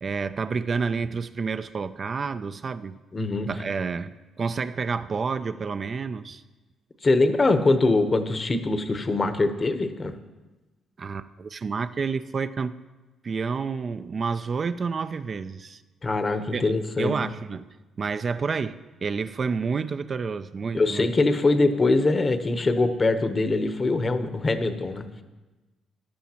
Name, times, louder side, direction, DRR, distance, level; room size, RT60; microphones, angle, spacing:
voice 1, 0.0-3.0 3.5-6.4 11.0-12.7 13.2-15.8 16.5-16.7 17.0-21.1, right 5 dB, 40° right, 11 dB, 0.3 m, -29 dB
voice 2, 3.1-3.5 7.0-10.1 16.0-17.1 20.7-25.2, left 2 dB, 30° left, 9 dB, 0.9 m, -23 dB
14.0 x 11.0 x 2.9 m, 1.2 s
cardioid pair, 90°, 0 cm